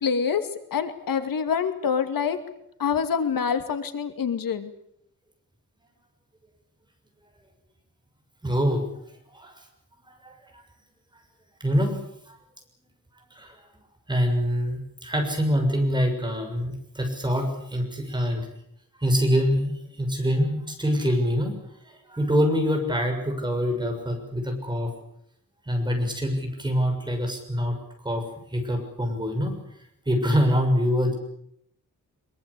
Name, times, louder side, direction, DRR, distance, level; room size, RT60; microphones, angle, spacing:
voice 1, 0.0-2.4 2.8-4.7, left 6 dB, 85° left, 8 dB, 2.5 m, -26 dB
voice 2, 8.4-8.8 9.3-9.6 10.1-10.6 11.6-12.0 12.3-12.4 13.3-13.7 14.1-18.5 19.0-21.6 21.8-24.9 25.6-27.8 28.0-29.6 30.0-31.1, equal, 15° right, 3 dB, 6.8 m, -25 dB
24.0 x 23.0 x 8.5 m, 0.73 s
wide cardioid pair, 175°, 33 cm